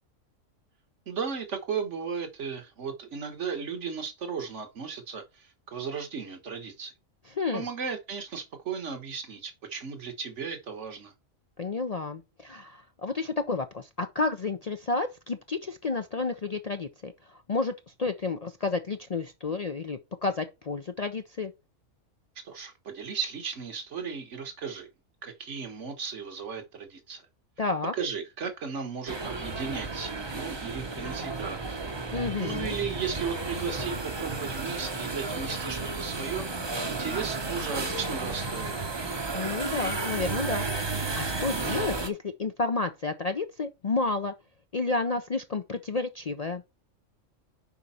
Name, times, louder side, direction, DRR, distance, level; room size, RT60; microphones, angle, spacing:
voice 1, 1.1-6.9 7.5-11.1 22.4-24.9 25.2-27.2 27.9-31.7 32.1-38.7, right 6 dB, 65° right, 1.6 m, -35 dB
voice 2, 7.3-7.7 11.6-17.7 18.0-21.5 27.6-27.9 32.1-32.7 39.3-44.3 44.7-46.6, left 3 dB, 45° left, 0.5 m, -31 dB
sound 1, 29.1-42.1, right 3 dB, 25° right, 0.8 m, -33 dB
7.0 x 5.2 x 4.3 m
omnidirectional pair, 1.3 m